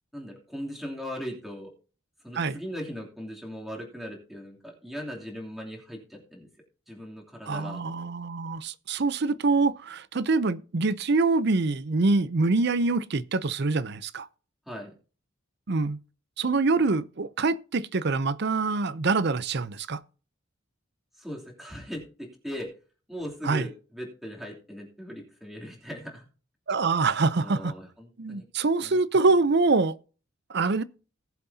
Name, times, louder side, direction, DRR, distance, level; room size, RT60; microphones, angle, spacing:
voice 1, 0.1-1.7 2.2-6.5 6.9-7.8 14.7-14.9 21.2-22.7 23.1-26.3 27.4-28.4 28.8-29.0, equal, ahead, 2.9 m, -39 dB
voice 2, 7.5-14.3 15.7-16.0 16.4-20.0 23.4-23.7 26.7-27.7 28.2-29.9 30.5-30.8, right 3 dB, 55° right, 0.6 m, -25 dB
19.0 x 7.4 x 2.8 m
head